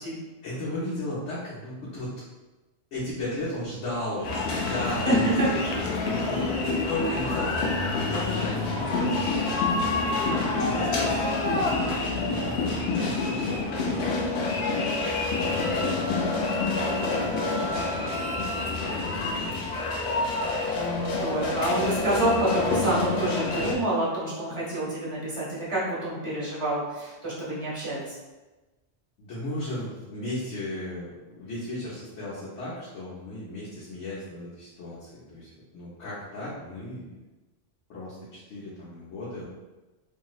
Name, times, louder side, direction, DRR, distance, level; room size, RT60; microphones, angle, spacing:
voice 1, 0.4-2.1 2.9-10.1 10.6-11.3 12.2-12.6 13.0-19.7 29.2-37.1 37.9-39.4, left 1 dB, 90° left, -9 dB, 1.1 m, -36 dB
sound 1, 4.2-23.8, left 3 dB, 65° left, 0.8 m, -27 dB
voice 2, 5.0-5.5 20.7-28.2, right 1 dB, 30° right, -7 dB, 1.0 m, -27 dB
Wind instrument woodwind instrument, 15.6-18.8, right 2 dB, 75° right, 0.9 m, -39 dB
2.9 x 2.7 x 2.4 m, 1.1 s
omnidirectional pair, 1.2 m